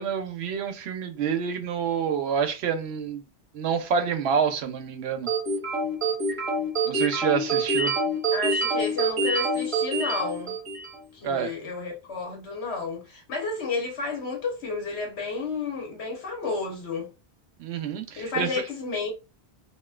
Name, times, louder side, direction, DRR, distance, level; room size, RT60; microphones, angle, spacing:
voice 1, 0.0-3.3 3.5-5.3 6.8-7.9 11.2-11.5 17.6-18.6, right 7 dB, 75° right, 0.8 m, -27 dB
sound 1, 5.3-11.0, right 2 dB, 30° right, 0.9 m, -26 dB
voice 2, 8.3-10.6 11.1-17.1 18.2-19.1, left 4 dB, 85° left, 1.3 m, -31 dB
3.0 x 2.6 x 2.3 m
omnidirectional pair, 1.1 m